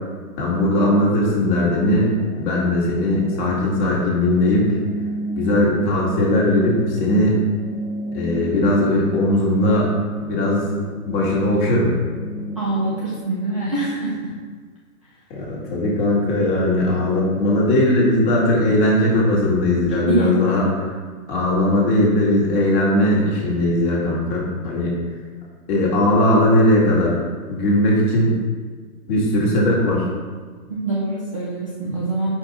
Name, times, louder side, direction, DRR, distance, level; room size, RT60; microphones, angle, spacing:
voice 1, 0.4-2.1 2.4-4.7 5.4-7.4 8.1-9.9 10.2-10.6 11.0-11.9 15.3-20.7 21.3-24.9 25.7-27.2 27.5-28.4 29.1-30.1, left 1 dB, 35° left, -4 dB, 1.6 m, -19 dB
sound 1, 2.1-13.2, equal, 50° left, 0.7 m, -32 dB
voice 2, 12.6-14.3 20.1-20.5 30.7-32.4, right 2 dB, 25° right, -6 dB, 0.4 m, -24 dB
5.2 x 4.7 x 4.0 m, 1.5 s
hypercardioid pair, 150°, 45 cm